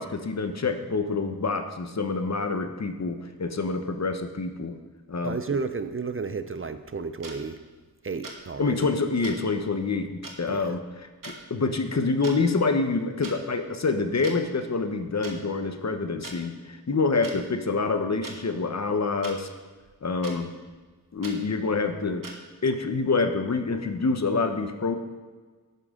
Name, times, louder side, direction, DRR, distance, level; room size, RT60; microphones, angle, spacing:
voice 1, 0.0-4.8 5.1-5.4 8.6-10.8 11.2-19.5 20.0-20.5 21.1-22.3 22.6-24.9, left 4 dB, 45° left, 7 dB, 1.0 m, -27 dB
voice 2, 5.2-7.6 8.0-8.8 10.5-10.7, right 4 dB, 35° right, 10 dB, 0.6 m, -32 dB
sound 1, 7.2-7.4 8.2-8.4 9.2-9.4 10.2-10.4 11.2-11.4 12.1-12.4 13.2-13.4 14.2-14.4 15.2-15.4 16.2-16.4 17.2-17.4 18.2-18.4 19.2-19.4 20.2-20.4 21.2-21.4 22.2-22.4, right 3 dB, 60° right, 1.5 m, -39 dB
11.0 x 9.4 x 3.7 m, 1.4 s
wide cardioid pair, 65°, 38 cm